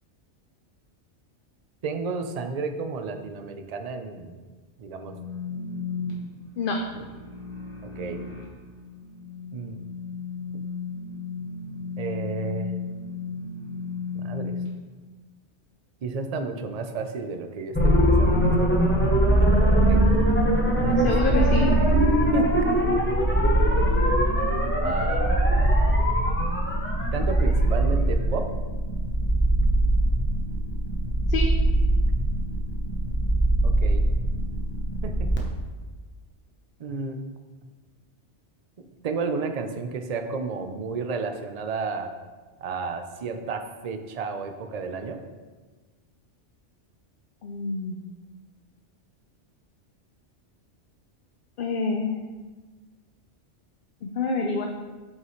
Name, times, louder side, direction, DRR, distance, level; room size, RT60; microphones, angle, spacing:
voice 1, 1.8-4.4 4.8-5.1 6.9-7.0 8.0-8.2 9.5-9.8 12.0-12.7 14.1-14.5 16.0-20.0 20.8-21.3 22.3-22.9 24.8-26.1 27.1-28.5 29.6-29.7 33.6-34.0 35.0-35.3 36.8-37.2 39.0-42.1 42.6-45.2, right 4 dB, 45° right, 6 dB, 0.5 m, -32 dB
sound 1, 5.0-14.7, left 5 dB, 25° left, 1.4 m, -35 dB
sound 2, 17.7-35.4, right 1 dB, 10° left, 0.8 m, -21 dB
voice 2, 21.0-21.7 31.3-31.5 47.4-48.0 51.6-52.3 54.2-54.7, left 4 dB, 55° left, 2 dB, 0.7 m, -27 dB
7.9 x 5.6 x 3.1 m, 1.3 s
omnidirectional pair, 1.2 m